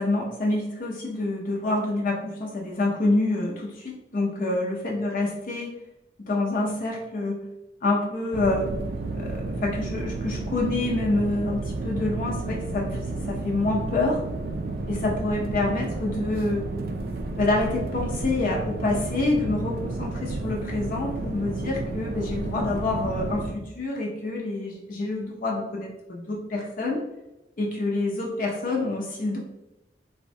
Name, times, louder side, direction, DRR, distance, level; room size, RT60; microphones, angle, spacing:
voice 1, 0.0-5.7 6.2-7.4 7.8-8.7 9.2-13.0 13.3-14.2 14.9-16.7 17.4-27.0 27.6-29.4, left 2 dB, 50° left, -1 dB, 0.5 m, -27 dB
sound 1, 8.3-23.5, right 2 dB, 55° right, 0.3 m, -31 dB
3.4 x 2.1 x 2.6 m, 0.96 s
head